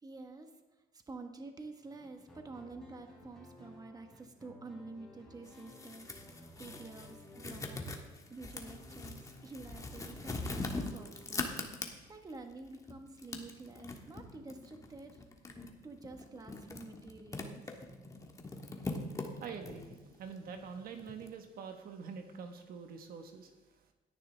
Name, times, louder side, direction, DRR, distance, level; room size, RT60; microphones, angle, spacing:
voice 1, 0.0-0.5 0.9-6.1 6.3-7.9 8.3-11.5 11.8-15.2 15.8-17.7, right 3 dB, 20° right, 5 dB, 1.3 m, -49 dB
sound 1, 1.8-11.7, left 1 dB, 5° left, 4.0 m, -56 dB
sound 2, 5.4-12.3 12.7-21.3, left 2 dB, 20° left, 1.5 m, -42 dB
voice 2, 19.4-23.5, right 6 dB, 60° right, 6 dB, 1.3 m, -45 dB
17.0 x 10.5 x 3.4 m, 1.1 s
cardioid pair, 110°, 17 cm